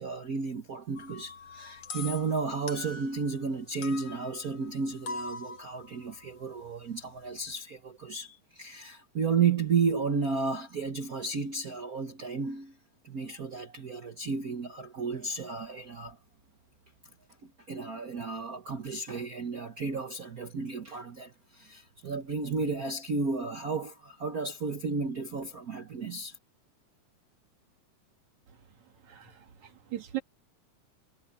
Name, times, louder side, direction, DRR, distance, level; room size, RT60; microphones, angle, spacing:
voice 1, 0.0-12.8 13.0-16.2 17.4-26.4, right 5 dB, 85° right, 0.7 m, -33 dB
sound 1, 1.0-3.5 3.8-7.5, left 4 dB, 55° left, 2.8 m, -43 dB
voice 2, 29.1-30.2, right 14 dB, 65° right, 3.8 m, -38 dB
omnidirectional pair, 3.5 m